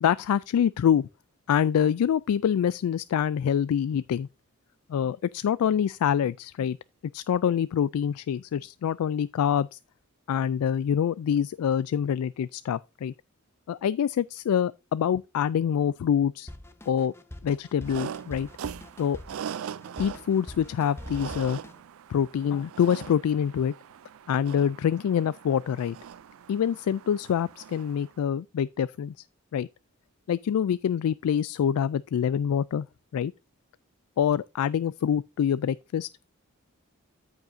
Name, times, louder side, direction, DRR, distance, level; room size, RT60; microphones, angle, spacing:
voice 1, 0.0-1.1 1.5-4.3 4.9-6.8 7.1-9.8 10.3-13.1 13.7-16.5 16.9-17.1 17.4-18.5 19.0-19.2 20.0-21.6 22.1-23.7 24.3-26.0 26.5-29.2 29.5-29.7 30.3-32.9 33.1-33.3 34.2-36.1, left 8 dB, 90° left, 0.3 m, -25 dB
Drum kit, 16.5-21.8, left 1 dB, 10° left, 0.6 m, -44 dB
sound 1, 17.8-28.2, right 8 dB, 70° right, 0.3 m, -41 dB
13.5 x 5.3 x 2.6 m
head